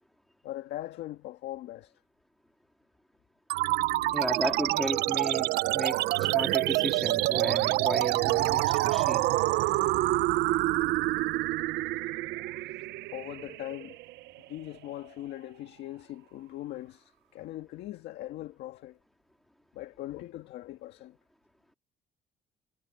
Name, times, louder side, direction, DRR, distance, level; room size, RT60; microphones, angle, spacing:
voice 1, 0.4-2.0 13.1-14.0 14.4-19.0 19.7-21.2, left 14 dB, 80° left, 1.8 m, -40 dB
sound 1, 3.5-14.4, right 18 dB, 85° right, 0.5 m, -27 dB
voice 2, 4.1-9.3, equal, ahead, 3.0 m, -35 dB
cardioid pair, 110°, 17 cm